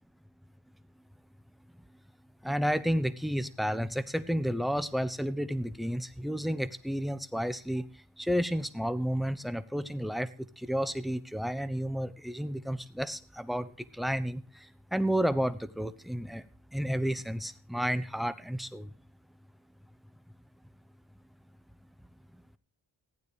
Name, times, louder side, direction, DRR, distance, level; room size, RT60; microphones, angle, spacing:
voice 1, 2.4-7.9 8.2-16.4 16.7-18.9, equal, ahead, 12 dB, 0.9 m, -31 dB
15.0 x 9.3 x 5.0 m, 0.38 s
cardioid pair, 80°, 47 cm